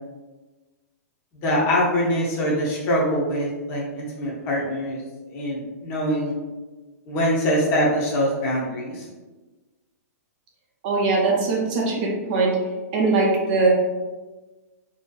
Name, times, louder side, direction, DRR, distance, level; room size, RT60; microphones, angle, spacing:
voice 1, 1.4-5.0 5.3-6.3 7.1-9.1, equal, 25° left, -4 dB, 0.5 m, -23 dB
voice 2, 10.8-12.6 12.9-13.7, right 3 dB, 35° right, -3 dB, 0.5 m, -21 dB
2.6 x 2.2 x 2.2 m, 1.2 s
hypercardioid pair, 160°, 9 cm